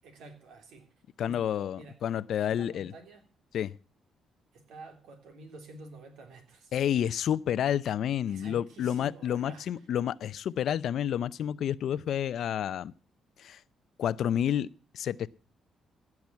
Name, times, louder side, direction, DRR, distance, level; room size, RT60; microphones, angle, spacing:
voice 1, 0.0-0.9 1.2-2.0 2.4-3.2 4.5-6.7 8.2-9.7, right 2 dB, 85° right, 3.1 m, -49 dB
voice 2, 1.2-2.9 3.5-3.8 6.7-12.9 13.4-13.6 14.0-15.3, left 10 dB, 70° left, 0.5 m, -30 dB
15.5 x 6.1 x 8.3 m
cardioid pair, 90°, 0 cm